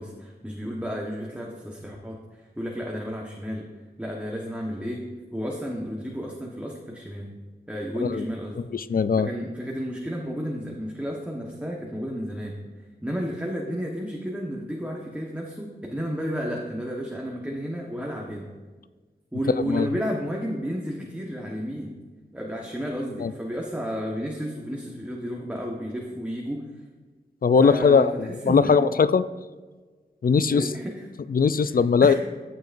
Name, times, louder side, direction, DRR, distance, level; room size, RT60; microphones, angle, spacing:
voice 1, 0.0-3.7 4.0-5.0 5.3-7.3 7.7-8.6 9.1-12.6 13.0-18.5 19.3-21.9 22.3-26.6 27.6-28.9 30.5-31.1 31.7-32.1, equal, 5° right, -2 dB, 1.3 m, -32 dB
voice 2, 8.7-9.3 19.7-19.9 23.2-23.3 27.4-29.2 30.2-30.7 31.3-32.1, left 5 dB, 55° left, 14 dB, 0.4 m, -20 dB
14.0 x 7.8 x 2.6 m, 1.4 s
wide cardioid pair, 70°, 18 cm